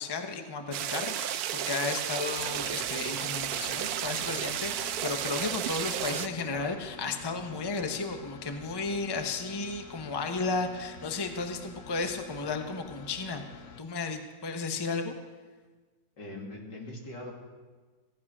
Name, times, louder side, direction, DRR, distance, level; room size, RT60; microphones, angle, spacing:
voice 1, 0.0-13.4 13.8-15.1, left 4 dB, 20° left, 5 dB, 0.8 m, -34 dB
sound 1, 0.7-6.3, right 11 dB, 70° right, 1.0 m, -33 dB
sound 2, 2.4-13.8, left 5 dB, 60° left, 1.0 m, -49 dB
voice 2, 16.2-17.3, left 1 dB, 80° left, -1 dB, 3.3 m, -41 dB
16.0 x 11.5 x 6.1 m, 1.4 s
omnidirectional pair, 1.8 m